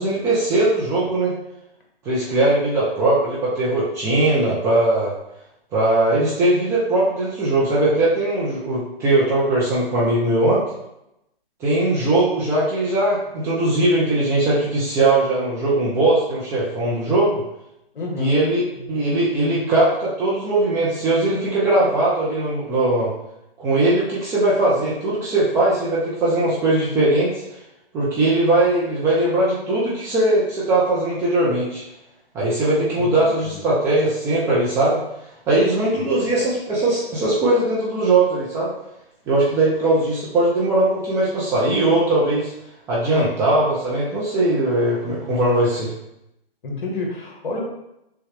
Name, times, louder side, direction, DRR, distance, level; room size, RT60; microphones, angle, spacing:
voice 1, 0.0-1.3 2.0-5.1 5.7-10.6 11.6-17.4 18.2-18.6 18.9-23.1 23.6-27.4 27.9-31.8 32.3-35.0 35.5-38.7 39.3-42.5 42.9-45.9, right 2 dB, 10° right, -8 dB, 0.5 m, -20 dB
voice 2, 17.9-18.3 32.9-33.6 36.2-36.4 46.6-47.6, left 2 dB, 55° left, -1 dB, 1.5 m, -29 dB
6.3 x 2.3 x 3.3 m, 0.84 s
hypercardioid pair, 140°, 30 cm